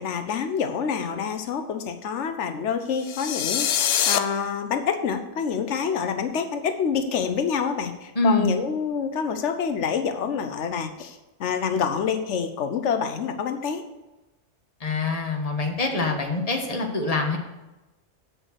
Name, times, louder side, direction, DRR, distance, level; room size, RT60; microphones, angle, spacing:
voice 1, 0.0-13.8, left 6 dB, 90° left, 7 dB, 1.1 m, -27 dB
sound 1, 3.0-4.2, left 9 dB, 65° left, 0.8 m, -24 dB
voice 2, 8.1-8.5 14.8-17.4, left 3 dB, 35° left, 2 dB, 1.5 m, -24 dB
8.0 x 6.4 x 6.4 m, 1.0 s
omnidirectional pair, 1.2 m